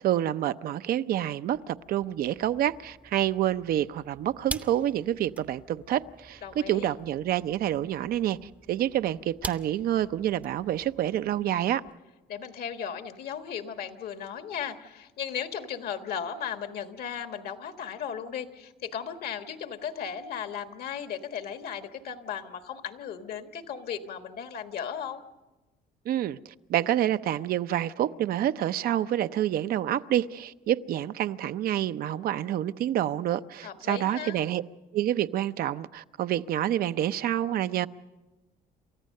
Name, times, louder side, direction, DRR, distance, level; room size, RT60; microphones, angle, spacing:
voice 1, 0.0-11.8 26.1-34.6 34.9-37.9, right 12 dB, 60° right, 0.6 m, -28 dB
sound 1, 1.5-12.0, right 1 dB, 10° right, 0.7 m, -45 dB
voice 2, 6.4-6.9 12.3-25.2 33.6-34.4, left 8 dB, 65° left, 1.5 m, -36 dB
28.5 x 14.0 x 6.5 m
cardioid pair, 110°, 17 cm